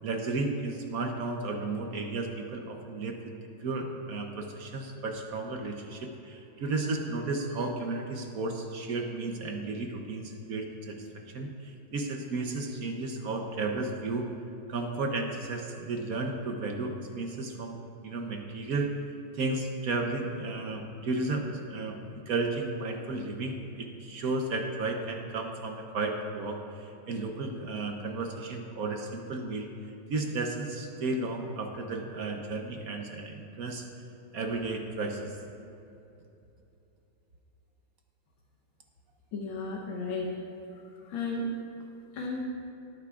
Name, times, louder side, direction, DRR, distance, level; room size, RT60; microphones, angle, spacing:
voice 1, 0.0-3.2 3.6-11.1 11.3-14.3 14.7-18.9 19.3-29.7 30.1-33.9 34.3-35.4, right 3 dB, 65° right, 3 dB, 0.9 m, -33 dB
voice 2, 39.3-40.3 40.7-41.5 42.1-42.4, left 3 dB, 70° left, -2 dB, 1.7 m, -34 dB
18.5 x 9.4 x 2.4 m, 2.8 s
omnidirectional pair, 2.3 m